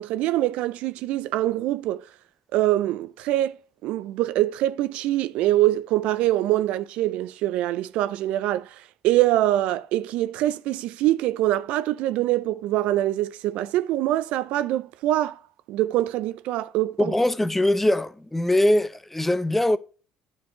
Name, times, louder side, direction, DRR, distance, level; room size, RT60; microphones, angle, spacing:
voice 1, 0.0-2.0 2.5-8.8 9.0-15.4 15.7-17.1, right 14 dB, 70° right, 0.4 m, -24 dB
voice 2, 17.0-19.8, left 1 dB, 10° left, 0.6 m, -22 dB
10.5 x 4.6 x 3.6 m
hypercardioid pair, 60°, 2 cm